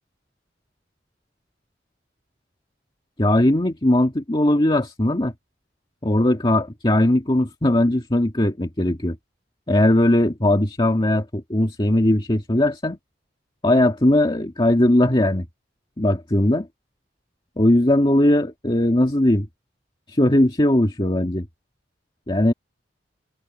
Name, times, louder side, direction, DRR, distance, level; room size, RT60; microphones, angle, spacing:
voice 1, 3.2-5.3 6.0-9.2 9.7-13.0 13.6-15.5 16.0-16.7 17.6-19.5 20.1-21.5 22.3-22.5, left 1 dB, 25° left, 1.9 m, -19 dB
head